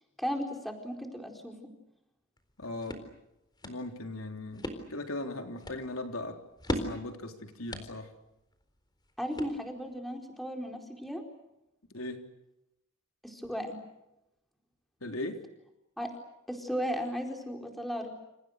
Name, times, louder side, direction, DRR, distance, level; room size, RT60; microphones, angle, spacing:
voice 1, 0.2-1.7 9.2-11.2 13.2-13.8 16.0-16.1 16.5-18.1, equal, ahead, 3 dB, 4.4 m, -35 dB
sound 1, 2.4-10.0, equal, 20° left, 4.0 m, -41 dB
voice 2, 2.6-3.0 3.6-4.6 4.9-6.4 6.7-8.1 11.9-12.2 15.0-15.4, left 2 dB, 75° left, 5 dB, 3.6 m, -38 dB
28.5 x 28.5 x 6.6 m, 0.89 s
head